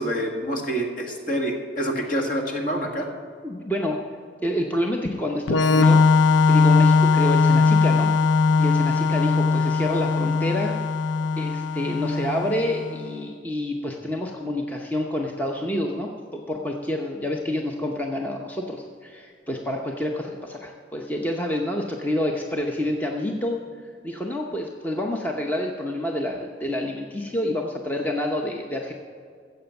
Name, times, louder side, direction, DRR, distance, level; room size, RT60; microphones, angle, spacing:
voice 1, 0.0-3.1, equal, 45° left, 2 dB, 1.8 m, -27 dB
voice 2, 3.4-4.0 4.4-6.1 6.5-8.1 8.6-10.8 11.4-23.6 24.0-28.9, left 1 dB, 10° left, 0 dB, 0.7 m, -28 dB
Organ, 5.5-13.0, left 4 dB, 85° left, 0.5 m, -20 dB
14.5 x 7.8 x 7.0 m, 2.2 s
head